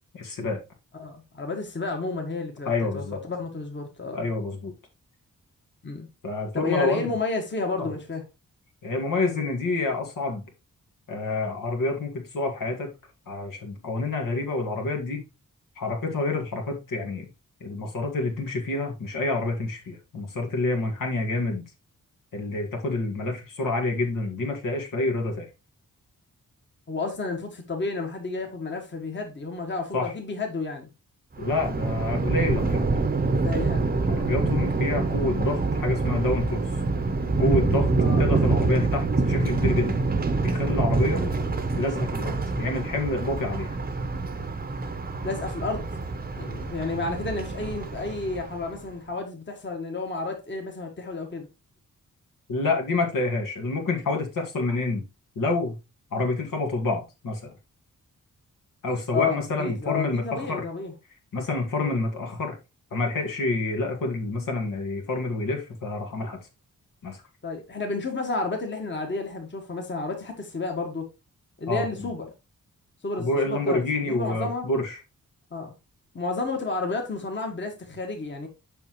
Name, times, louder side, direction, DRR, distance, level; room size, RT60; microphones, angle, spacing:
voice 1, 0.2-0.6 2.7-3.2 4.1-4.7 6.2-7.1 7.8-7.9 8.8-10.4 11.1-12.9 13.3-15.2 15.8-17.3 17.6-21.6 22.3-25.5 29.9-30.1 31.4-32.9 34.1-36.6 37.4-37.9 38.2-40.0 40.4-41.2 41.8-43.8 52.5-55.0 55.4-55.8 56.1-57.5 58.8-60.6 61.3-62.6 62.9-66.4 67.0-67.2 71.7-72.1 73.2-75.0, left 2 dB, 75° left, 2.0 m, -28 dB
voice 2, 1.0-4.3 5.8-6.1 6.5-8.2 26.9-30.9 33.3-33.9 38.0-38.2 41.1-41.3 45.2-45.9 46.3-51.5 59.1-60.9 67.4-71.1 71.6-72.3 73.0-74.7 75.5-75.7 76.1-78.5, left 3 dB, 35° left, 1.5 m, -31 dB
Thunder, 31.4-48.8, right 3 dB, 30° right, 0.8 m, -26 dB
6.9 x 5.7 x 3.1 m
wide cardioid pair, 105°, 32 cm